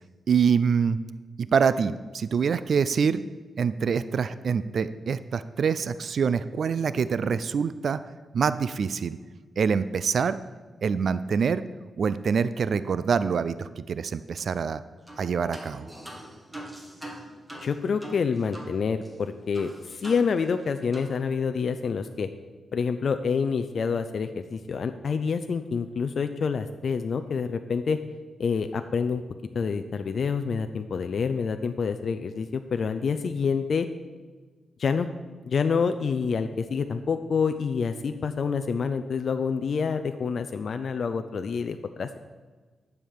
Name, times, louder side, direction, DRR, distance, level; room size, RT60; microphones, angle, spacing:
voice 1, 0.3-1.0 1.4-3.2 3.6-8.0 8.3-9.2 9.6-10.4 10.8-11.6 12.0-14.8 15.2-15.9, right 6 dB, 60° right, 14 dB, 0.4 m, -25 dB
sound 1, 15.1-15.2 15.5-18.7 19.0-19.1 19.5-20.6 20.9-21.1, right 1 dB, 10° right, 1.8 m, -42 dB
voice 2, 17.6-19.7 20.0-22.3 22.7-28.0 28.4-29.2 29.5-33.9 34.8-35.1 35.4-42.2, left 5 dB, 55° left, 8 dB, 0.5 m, -27 dB
11.0 x 7.1 x 6.6 m, 1.3 s
wide cardioid pair, 150°, 0 cm